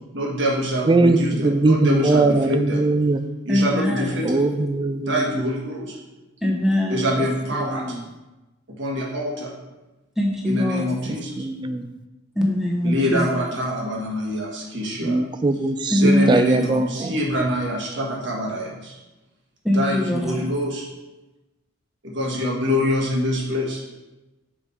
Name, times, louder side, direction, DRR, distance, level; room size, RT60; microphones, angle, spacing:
voice 1, 0.1-2.8 3.5-4.4 5.1-5.9 6.9-8.0 8.8-9.5 10.5-11.3 12.8-15.2 15.9-19.0 19.7-20.9 22.0-23.8, equal, 60° right, -2 dB, 1.6 m, -25 dB
voice 2, 0.9-3.2 4.2-5.5 7.2-8.0 11.1-11.9 15.0-17.2, right 2 dB, 20° right, 9 dB, 0.3 m, -21 dB
voice 3, 3.5-4.3 6.4-7.0 10.2-10.8 12.3-13.3 15.9-16.3 19.6-20.5, left 1 dB, ahead, -2 dB, 1.0 m, -21 dB
5.1 x 4.9 x 5.5 m, 1.1 s
head